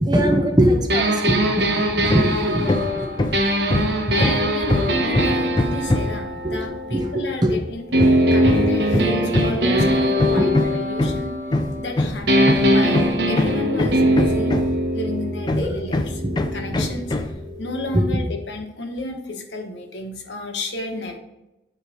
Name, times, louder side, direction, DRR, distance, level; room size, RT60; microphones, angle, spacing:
voice 1, 0.0-3.1 4.1-4.2 5.2-5.3 6.4-6.6 6.9-7.5 8.4-8.6 10.4-10.5 15.5-15.8 16.2-16.4 17.9-18.2, equal, 25° right, 3 dB, 0.8 m, -22 dB
sound 1, 0.9-7.4 7.9-11.9 12.3-18.0, equal, 65° right, 1.1 m, -22 dB
Hammer, 2.1-2.4 2.7-6.3 8.0-14.9 15.5-17.4, left 1 dB, 25° left, 0.4 m, -23 dB
voice 2, 4.1-7.8 8.3-11.3 11.8-14.5 14.9-16.2 16.5-17.1 17.6-21.2, left 2 dB, 85° left, 3 dB, 1.2 m, -32 dB
9.3 x 3.2 x 5.0 m, 0.98 s
head